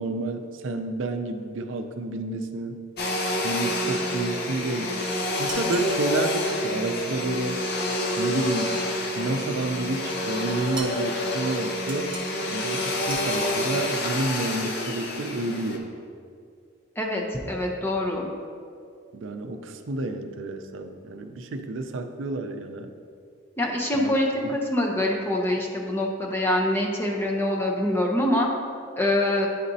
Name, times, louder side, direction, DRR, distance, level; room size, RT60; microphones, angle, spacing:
voice 1, 0.0-2.8 3.4-4.9 5.4-7.6 8.2-8.8 9.2-12.2 12.5-15.9 19.1-22.9 23.9-24.2 24.4-24.5, right 2 dB, 80° right, 7 dB, 0.4 m, -30 dB
Domestic sounds home sounds, 3.0-15.8, left 1 dB, 55° left, 0.7 m, -28 dB
sound 1, 5.5-5.9 10.7-11.1 11.9-12.5 13.1-13.6, right 3 dB, 25° right, 0.9 m, -38 dB
voice 2, 17.0-18.3 23.6-28.5 29.0-29.5, left 1 dB, 10° left, -1 dB, 0.6 m, -25 dB
9.9 x 4.1 x 2.7 m, 2.3 s
head